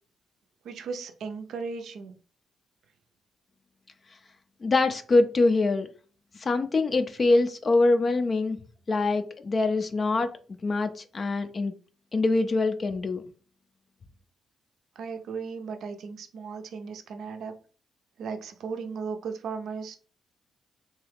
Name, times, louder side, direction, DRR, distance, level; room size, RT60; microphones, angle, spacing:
voice 1, 0.6-2.1 15.0-17.5 18.2-20.0, right 5 dB, 65° right, 6 dB, 0.5 m, -36 dB
voice 2, 4.6-5.9 6.3-8.6 8.9-10.3 10.6-11.7 12.1-13.2, left 3 dB, 40° left, 8 dB, 0.4 m, -24 dB
2.8 x 2.2 x 3.3 m, 0.40 s
hypercardioid pair, 40°, 0 cm